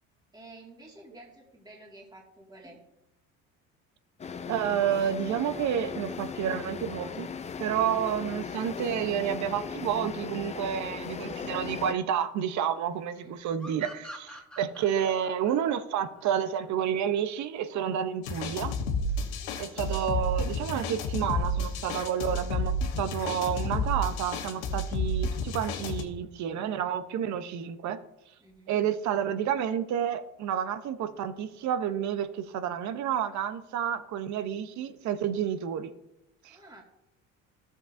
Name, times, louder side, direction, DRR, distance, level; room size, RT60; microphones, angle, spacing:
voice 1, 0.3-2.8 13.1-13.3 19.4-20.0 28.4-28.8 36.5-36.8, right 2 dB, 10° right, -3 dB, 2.1 m, -51 dB
sound 1, 4.2-11.9, left 6 dB, 20° left, 0.4 m, -38 dB
voice 2, 4.5-7.3 7.6-18.7 19.6-28.0 28.7-35.9 36.4-36.6, right 9 dB, 60° right, 11 dB, 0.8 m, -30 dB
sound 2, 13.6-17.0, equal, 5° left, 1.8 m, -46 dB
sound 3, 18.2-26.0, left 1 dB, 90° left, 1.2 m, -31 dB
13.5 x 7.3 x 2.6 m, 0.88 s
supercardioid pair, 85°, 33 cm